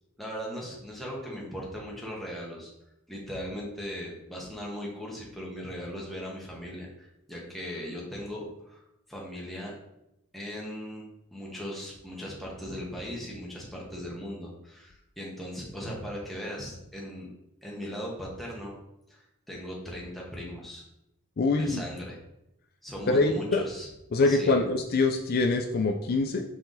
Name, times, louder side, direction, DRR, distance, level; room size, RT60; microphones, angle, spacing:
voice 1, 0.2-2.7 3.1-8.8 9.1-9.7 10.3-17.3 17.6-18.7 19.1-20.8 21.6-22.2 22.8-23.9 24.2-24.5, equal, ahead, -4 dB, 1.4 m, -38 dB
voice 2, 21.4-21.8 23.1-23.6 24.1-26.4, left 3 dB, 45° left, 3 dB, 0.4 m, -24 dB
5.9 x 4.5 x 3.9 m, 0.86 s
head